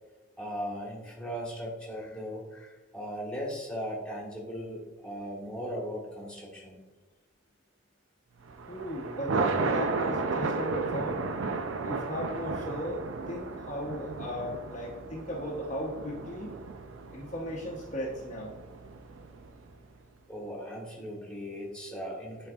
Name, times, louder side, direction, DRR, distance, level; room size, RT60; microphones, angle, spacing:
voice 1, 0.4-6.8 20.3-22.5, equal, 5° left, -3 dB, 1.4 m, -38 dB
Thunder, 8.4-19.8, right 4 dB, 75° right, 0.5 m, -34 dB
voice 2, 8.7-11.2 11.8-13.0 13.3-16.5 17.1-18.5, equal, 35° left, -3 dB, 0.9 m, -36 dB
10.5 x 4.0 x 2.4 m, 1.2 s
head